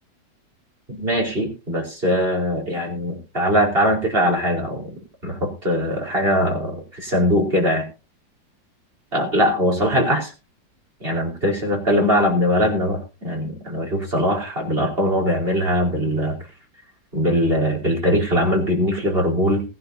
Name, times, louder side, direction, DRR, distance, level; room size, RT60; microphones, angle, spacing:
voice 1, 0.9-4.9 5.2-7.9 9.1-10.3 11.0-16.4 17.1-19.6, equal, 30° right, 2 dB, 4.8 m, -21 dB
20.0 x 11.0 x 2.7 m, 0.31 s
omnidirectional pair, 2.0 m